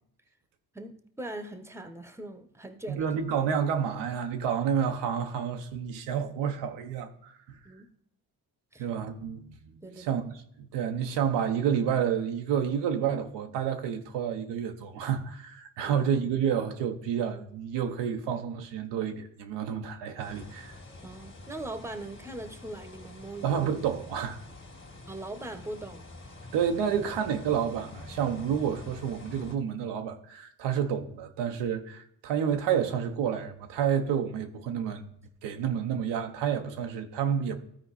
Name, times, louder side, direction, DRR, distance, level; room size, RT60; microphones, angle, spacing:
voice 1, 0.7-3.1 7.6-7.9 8.7-8.9 9.8-10.2 15.8-16.0 21.0-23.6 25.1-26.1, right 1 dB, 5° right, 1.1 m, -40 dB
voice 2, 2.9-7.6 8.8-10.2 10.6-20.8 23.4-24.4 26.5-35.0 35.4-37.6, right 8 dB, 85° right, 0.9 m, -29 dB
sound 1, 20.2-29.6, left 2 dB, 30° left, 2.0 m, -47 dB
13.0 x 4.4 x 4.1 m
supercardioid pair, 50°, 41 cm